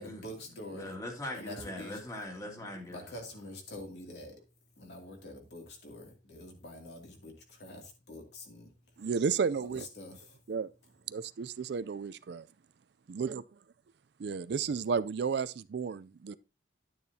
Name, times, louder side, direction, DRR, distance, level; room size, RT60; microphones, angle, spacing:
voice 1, 0.0-0.9 1.3-2.0 2.9-9.1 9.5-10.5, left 1 dB, 60° left, 2.6 m, -46 dB
voice 2, 0.7-3.1, left 1 dB, 15° left, 2.3 m, -41 dB
voice 3, 9.0-9.9 10.5-10.7 11.1-12.5 13.1-13.4 14.2-16.4, right 5 dB, 60° right, 0.4 m, -32 dB
10.5 x 9.3 x 2.8 m
head